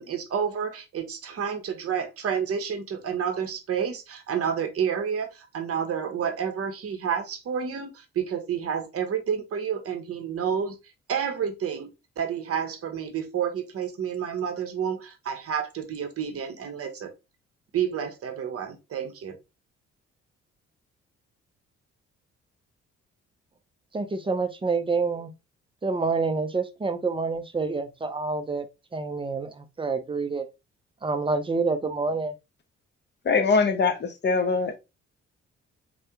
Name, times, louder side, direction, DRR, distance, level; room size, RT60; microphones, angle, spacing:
voice 1, 0.0-10.8 11.1-17.1 17.7-19.4, right 7 dB, 40° right, 0.8 m, -30 dB
voice 2, 23.9-25.3 25.8-28.7 28.9-30.5 31.0-32.3, right 4 dB, 15° right, 0.5 m, -27 dB
voice 3, 33.2-34.8, left 4 dB, 30° left, 0.7 m, -22 dB
3.3 x 2.2 x 2.8 m
figure-of-eight pair, 40°, 36 cm